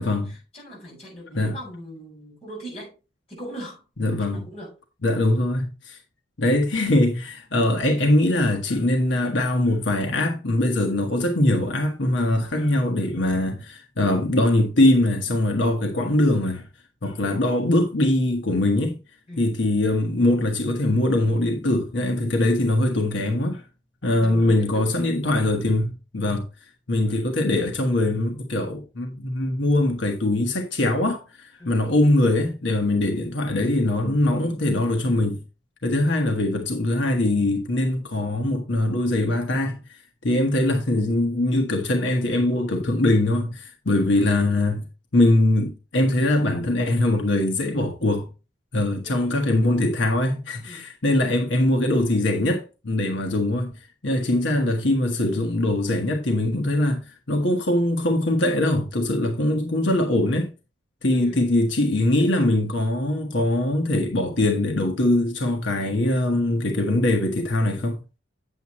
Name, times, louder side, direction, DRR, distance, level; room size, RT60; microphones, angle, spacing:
voice 1, 0.0-2.9 3.3-4.7 19.3-19.5 24.2-25.0 25.2-25.5 31.6-31.8 36.0-36.4 40.3-40.4 49.0-49.5 50.7-50.9 61.1-61.5, equal, 35° left, 5.9 m, -40 dB
voice 2, 4.0-4.5 5.0-6.0 6.4-16.6 17.0-19.0 19.4-23.6 24.0-26.4 26.9-35.4 35.8-39.8 40.2-44.8 45.1-48.3 48.7-53.7 54.0-60.5 61.0-68.0, left 1 dB, 80° left, 1.3 m, -22 dB
8.6 x 7.9 x 3.0 m
head